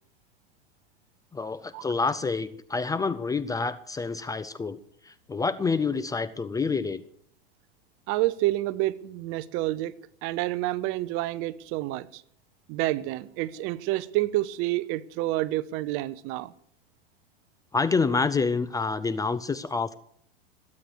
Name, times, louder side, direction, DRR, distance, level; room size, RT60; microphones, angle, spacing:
voice 1, 1.3-4.8 5.0-7.0 17.7-19.9, left 4 dB, 10° left, 0.5 m, -27 dB
voice 2, 8.1-9.9 10.2-12.2 12.7-16.5, right 17 dB, 45° right, 0.8 m, -28 dB
22.5 x 8.5 x 6.4 m
hypercardioid pair, 100°, 30 cm